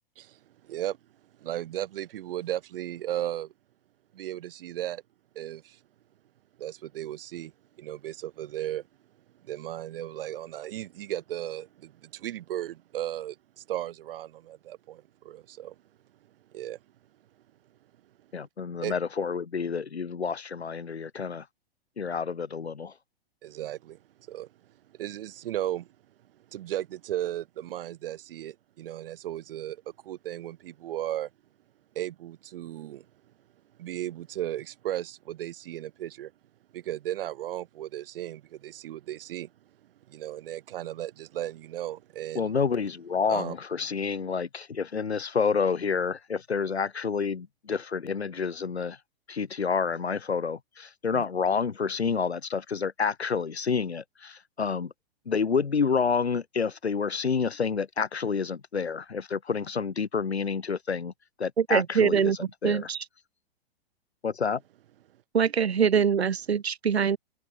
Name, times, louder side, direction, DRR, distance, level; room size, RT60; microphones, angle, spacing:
voice 1, 0.2-1.0 1.4-3.5 4.1-5.0 5.4-5.8 6.6-8.8 9.4-15.8 16.5-16.8 18.8-18.9 23.4-24.0 24.3-24.5 24.9-25.9 26.5-31.3 32.0-33.1 33.8-36.3 36.7-39.5 40.1-42.6 43.3-43.6 51.1-51.2, right 12 dB, 60° right, 7.0 m, -35 dB
voice 2, 18.3-21.4 22.0-22.9 42.3-49.0 49.3-54.9 55.3-61.1 61.4-62.3 62.6-62.9 64.2-64.6, left 5 dB, 90° left, 2.5 m, -29 dB
voice 3, 61.6-63.0 65.3-67.2, right 7 dB, 85° right, 1.6 m, -24 dB
hypercardioid pair, 120°, 31 cm